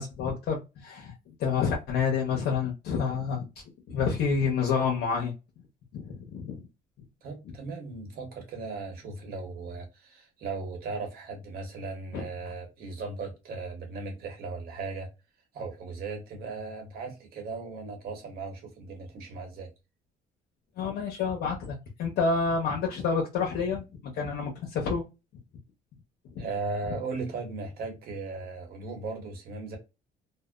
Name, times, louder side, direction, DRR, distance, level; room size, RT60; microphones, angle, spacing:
voice 1, 0.0-3.5 3.9-5.3 5.9-6.6 12.1-12.3 20.8-25.0 26.4-26.5, left 5 dB, 75° left, 0.8 m, -29 dB
voice 2, 7.2-15.1 15.5-19.7 26.4-29.8, right 3 dB, 65° right, 1.2 m, -37 dB
2.7 x 2.1 x 2.2 m
cardioid pair, 110°, 17 cm